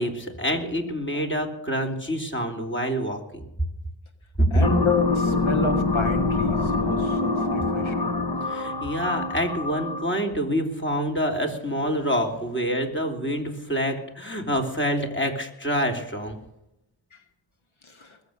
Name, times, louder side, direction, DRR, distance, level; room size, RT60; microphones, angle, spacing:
voice 1, 0.0-3.4 4.4-4.7 8.4-16.4, equal, 25° left, 2 dB, 3.4 m, -26 dB
voice 2, 4.5-8.1 18.0-18.1, left 4 dB, 85° left, 5 dB, 2.2 m, -29 dB
sound 1, 4.6-10.2, left 3 dB, 55° left, 1.4 m, -25 dB
21.0 x 7.9 x 6.6 m, 0.85 s
cardioid pair, 40°, 46 cm